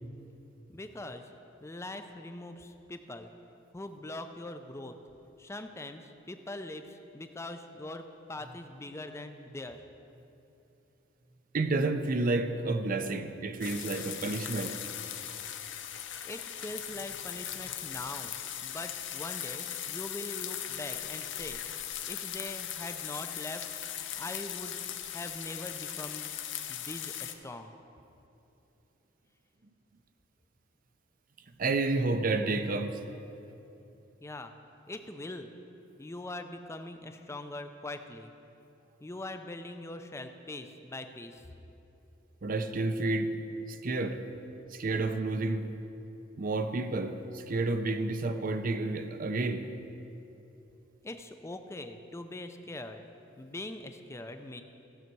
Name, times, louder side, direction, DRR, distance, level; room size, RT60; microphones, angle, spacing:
voice 1, 0.7-1.3 1.6-3.3 3.7-5.0 5.4-9.8 16.2-21.6 22.0-23.7 24.2-24.8 25.1-26.3 26.7-27.7 34.2-34.5 34.9-35.5 36.0-38.3 39.0-41.5 51.0-53.1 53.4-54.6, left 2 dB, 15° left, 7 dB, 0.5 m, -42 dB
voice 2, 11.5-14.8 31.6-33.0 42.4-43.3 43.7-44.2 44.7-45.7 46.4-49.6, right 3 dB, 45° right, 8 dB, 0.6 m, -30 dB
sound 1, 13.6-27.3, left 10 dB, 70° left, 0.6 m, -39 dB
15.5 x 6.5 x 4.6 m, 2.9 s
head